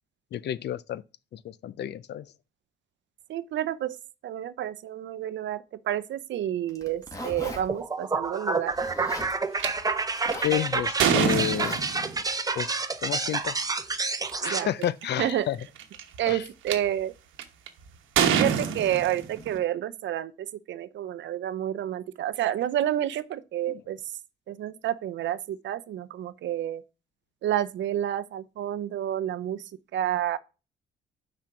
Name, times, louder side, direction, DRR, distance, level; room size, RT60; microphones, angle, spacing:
voice 1, 0.3-1.0 1.3-2.3 10.4-11.8 12.6-12.7 13.0-13.6 14.4-15.6 16.3-16.5 23.7-23.8, left 12 dB, 60° left, 0.5 m, -30 dB
voice 2, 3.3-4.0 4.2-8.7 14.4-14.7 15.2-15.5 16.2-17.1 18.3-24.0 24.5-26.8 27.4-29.6 29.9-30.4, right 11 dB, 70° right, 0.6 m, -29 dB
Zipper (clothing), 6.7-7.6 8.7-9.3 10.1-10.6 11.5-11.8, left 1 dB, 15° left, 1.9 m, -38 dB
sound 1, 7.7-14.6, right 3 dB, 20° right, 0.7 m, -29 dB
sound 2, 9.6-9.7 10.3-12.2 13.4-13.6 14.3-14.4 14.6-15.0 15.8-16.7 17.4-17.7 18.2-19.6, right 7 dB, 85° right, 1.1 m, -25 dB
6.1 x 4.3 x 5.8 m
cardioid pair, 90°, 20 cm